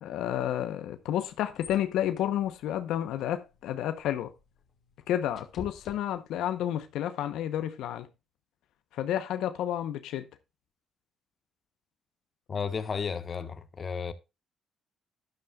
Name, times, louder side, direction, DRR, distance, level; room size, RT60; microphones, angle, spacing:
voice 1, 0.0-4.3 5.1-8.1 8.9-10.3, left 11 dB, 85° left, 0.9 m, -31 dB
sound 1, 0.9-6.6, left 6 dB, 65° left, 1.7 m, -52 dB
voice 2, 12.5-14.1, left 6 dB, 40° left, 1.4 m, -33 dB
13.0 x 10.5 x 2.4 m
cardioid pair, 90°, 0 cm